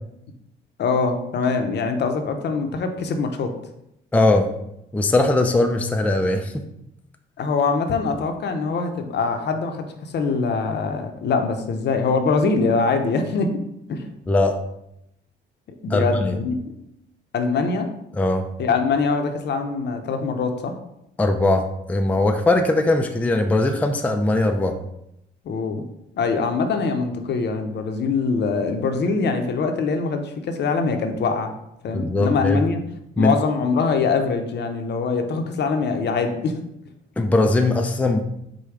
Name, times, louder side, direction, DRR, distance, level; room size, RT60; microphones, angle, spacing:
voice 1, 0.8-3.5 7.4-13.5 13.9-14.1 15.8-16.6 17.3-17.9 18.6-20.7 25.4-25.8 26.2-31.5 31.8-32.8 33.2-36.6, left 4 dB, 60° left, 6 dB, 0.7 m, -23 dB
voice 2, 4.1-4.5 4.9-6.6 14.3-14.6 15.9-16.4 18.1-18.5 21.2-24.8 31.9-32.6 33.2-33.3 37.2-38.2, left 2 dB, 5° left, 5 dB, 0.4 m, -20 dB
4.9 x 2.2 x 4.6 m, 0.80 s
cardioid pair, 90°, 20 cm